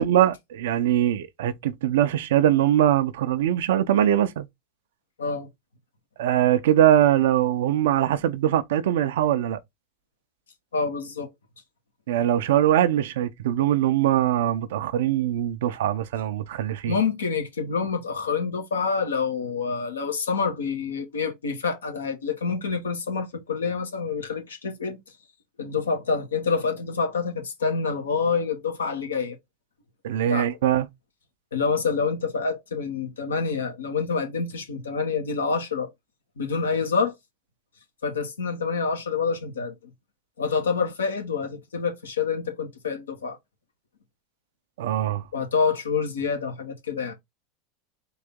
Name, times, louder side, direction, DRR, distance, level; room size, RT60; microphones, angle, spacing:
voice 1, 0.0-4.5 6.2-9.6 12.1-17.0 30.0-30.9 44.8-45.2, right 11 dB, 75° right, 0.6 m, -22 dB
voice 2, 10.7-11.3 16.8-25.0 25.6-29.4 30.3-30.5 31.5-35.9 36.4-37.1 38.0-39.7 40.4-43.4 45.3-47.1, left 5 dB, 90° left, 1.3 m, -27 dB
3.9 x 2.7 x 3.6 m
hypercardioid pair, 95°, 0 cm